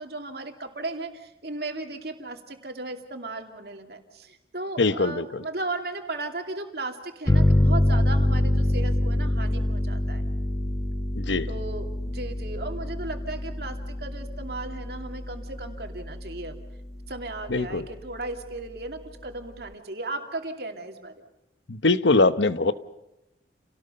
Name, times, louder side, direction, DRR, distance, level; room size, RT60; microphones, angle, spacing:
voice 1, 0.0-10.2 11.5-16.5 17.1-21.2, right 2 dB, 60° right, 4 dB, 2.6 m, -36 dB
voice 2, 4.8-5.4 11.2-11.5 17.5-17.9 21.7-22.7, left 3 dB, 80° left, 13 dB, 0.9 m, -22 dB
sound 1, 7.3-16.6, left 1 dB, 20° left, 0.9 m, -25 dB
30.0 x 18.5 x 5.6 m, 0.91 s
head